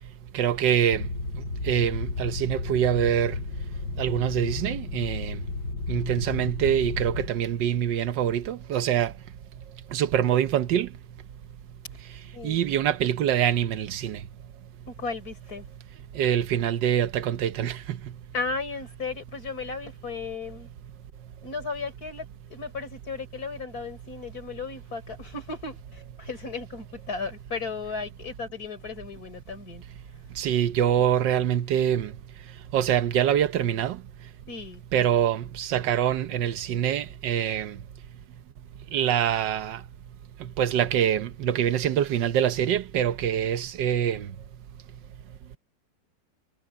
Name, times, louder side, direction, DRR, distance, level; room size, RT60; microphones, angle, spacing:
voice 1, 0.3-1.1 1.3-3.4 4.0-5.4 5.9-9.1 9.9-10.9 12.4-14.2 16.1-18.1 30.4-32.1 32.7-34.0 34.9-37.8 38.9-39.8 40.4-44.3, right 10 dB, 90° right, 1.6 m, -25 dB
sound 1, 0.9-7.3, left 3 dB, 80° left, 4.4 m, -33 dB
voice 2, 14.9-15.7 18.3-20.7 21.4-22.2 22.5-29.8 34.5-34.8, left 4 dB, 55° left, 4.7 m, -35 dB
omnidirectional pair, 1.9 m